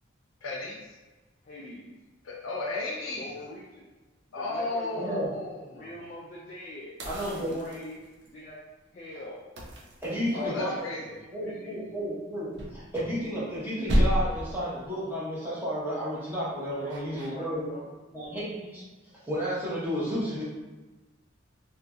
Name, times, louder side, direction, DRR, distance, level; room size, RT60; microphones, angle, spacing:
voice 1, 0.4-0.8 2.3-3.3 4.3-5.8 10.3-11.0, left 2 dB, 80° left, -2 dB, 0.6 m, -34 dB
voice 2, 1.4-2.0 3.0-3.9 4.3-5.3 5.7-7.0 7.3-8.6 8.9-9.5 10.3-11.1 11.4-11.7 16.8-18.3, left 1 dB, 40° left, -5 dB, 0.3 m, -44 dB
voice 3, 5.0-5.3 7.0-7.6 10.0-11.0 11.3-17.7 18.1-18.8 19.2-20.4, equal, 10° right, -9 dB, 0.7 m, -32 dB
sound 1, 7.0-8.3 9.6-10.7 12.5-13.6 13.9-14.6 16.9-17.3, equal, 55° right, 0.5 m, -30 dB
2.7 x 2.6 x 2.3 m, 1.2 s
head